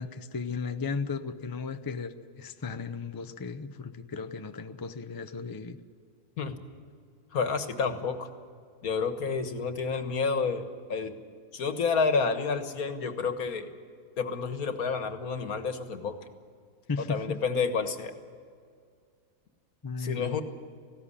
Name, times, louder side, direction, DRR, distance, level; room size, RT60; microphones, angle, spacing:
voice 1, 0.0-5.8 16.9-17.4 19.8-20.4, left 5 dB, 30° left, 9 dB, 0.4 m, -35 dB
voice 2, 7.3-8.3 8.8-11.1 11.5-13.7 14.2-16.2 17.1-18.1 20.0-20.4, left 5 dB, 65° left, 9 dB, 1.8 m, -29 dB
19.0 x 16.5 x 9.9 m, 2.2 s
omnidirectional pair, 1.6 m